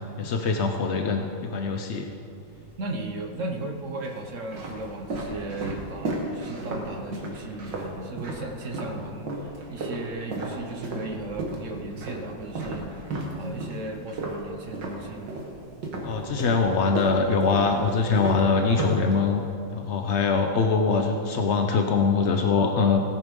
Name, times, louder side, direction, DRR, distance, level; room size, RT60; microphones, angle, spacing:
voice 1, 0.2-2.1 16.0-19.4 19.7-23.0, left 4 dB, 65° left, 4 dB, 0.7 m, -23 dB
sound 1, 2.5-3.2 3.9-9.0 9.3-15.5 15.8-19.5, right 2 dB, 65° right, 2.3 m, -33 dB
voice 2, 2.8-12.9 13.3-15.3, right 2 dB, 50° right, 4 dB, 1.1 m, -36 dB
17.5 x 8.9 x 5.3 m, 2.5 s
omnidirectional pair, 2.1 m